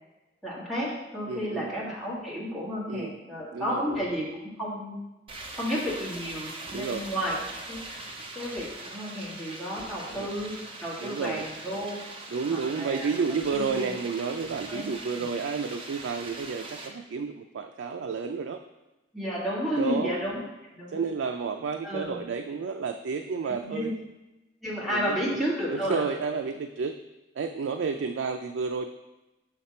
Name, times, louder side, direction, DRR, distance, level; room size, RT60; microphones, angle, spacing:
voice 1, 0.4-4.3 4.6-5.0 5.5-7.4 7.7-8.0 8.4-12.0 12.5-13.9 14.7-14.9 15.2-15.3 19.1-20.4 20.7-21.0 21.8-22.3 23.5-23.9 24.6-26.0, equal, ahead, -8 dB, 1.7 m, -32 dB
voice 2, 1.3-1.7 2.9-3.2 3.5-4.0 6.7-7.1 10.1-10.3 11.0-11.5 12.3-18.6 19.8-20.2 20.9-23.9 24.9-25.4 25.7-27.0 27.3-28.9, right 5 dB, 80° right, 6 dB, 0.4 m, -31 dB
sound 1, 5.3-16.9, right 2 dB, 30° right, 0.8 m, -41 dB
5.8 x 5.7 x 4.3 m, 1.0 s
head